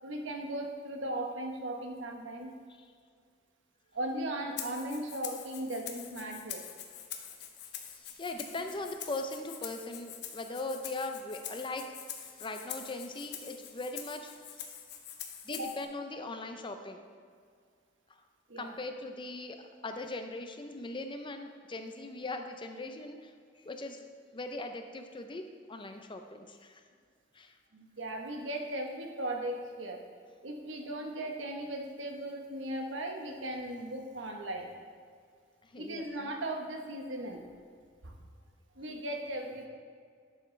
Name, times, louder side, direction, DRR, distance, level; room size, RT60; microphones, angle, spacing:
voice 1, 0.0-2.5 3.9-6.6 15.6-15.7 18.5-18.7 27.7-30.0 30.4-34.7 35.8-37.4 38.0-38.1 38.8-39.7, right 1 dB, 80° right, 2 dB, 1.1 m, -37 dB
Rattle (instrument), 4.6-15.8, left 9 dB, 60° left, 0.8 m, -45 dB
voice 2, 7.9-14.6 15.4-17.0 18.1-18.2 18.6-23.3 23.6-24.1 24.3-26.8 27.3-27.5 35.6-36.0, left 2 dB, 25° left, 6 dB, 0.6 m, -40 dB
10.5 x 6.7 x 3.2 m, 2.1 s
head